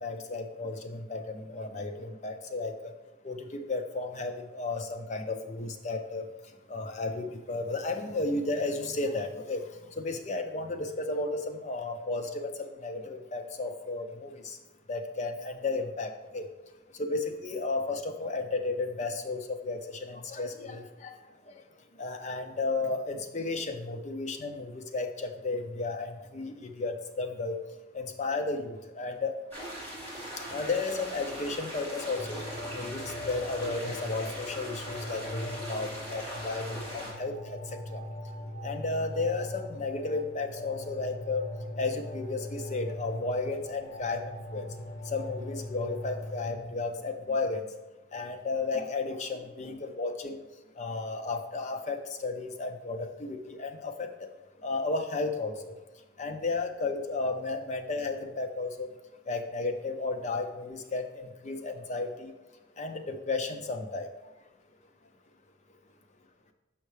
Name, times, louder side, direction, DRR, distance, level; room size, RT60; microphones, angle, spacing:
voice 1, 0.0-2.7 3.2-6.2 6.7-9.6 10.0-12.5 12.8-14.6 14.9-16.5 17.0-21.2 21.5-21.6 22.0-27.6 27.9-29.4 30.5-32.4 32.7-37.6 37.9-38.0 38.6-41.5 41.8-44.7 45.1-47.6 48.1-50.4 50.8-54.1 54.6-55.7 56.2-58.9 59.3-62.3 62.8-64.1, left 3 dB, 35° left, 6 dB, 0.4 m, -33 dB
sound 1, 29.5-37.1, equal, 10° left, 2.0 m, -40 dB
sound 2, 32.2-46.6, left 1 dB, 65° left, 0.7 m, -41 dB
6.4 x 5.6 x 3.2 m, 1.1 s
head